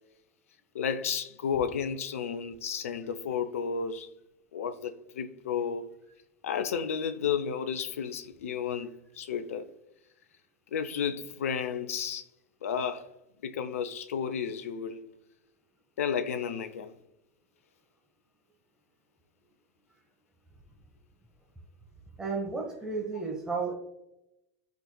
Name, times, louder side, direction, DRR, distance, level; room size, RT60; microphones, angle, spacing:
voice 1, 0.7-4.1 4.5-5.9 6.4-9.7 10.7-12.2 12.6-13.1 13.4-15.0 16.0-16.9, left 7 dB, 70° left, 0.7 m, -32 dB
voice 2, 22.2-23.7, right 4 dB, 10° right, 1.5 m, -32 dB
15.0 x 5.3 x 2.3 m
figure-of-eight pair, 80°, 8 cm